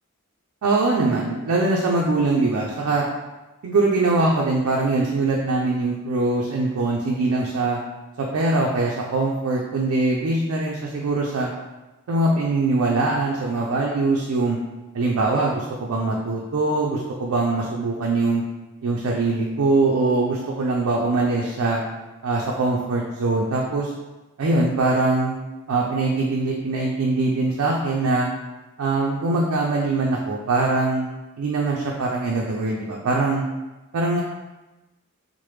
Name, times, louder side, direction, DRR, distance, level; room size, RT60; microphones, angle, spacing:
voice 1, 0.6-3.0 3.6-7.8 8.2-11.5 12.1-14.6 14.9-18.4 18.8-21.8 22.2-23.9 24.4-25.4 25.7-28.3 28.8-31.1 31.4-33.4 33.9-34.2, right 3 dB, 70° right, -2 dB, 0.4 m, -22 dB
3.1 x 2.1 x 3.1 m, 1.1 s
head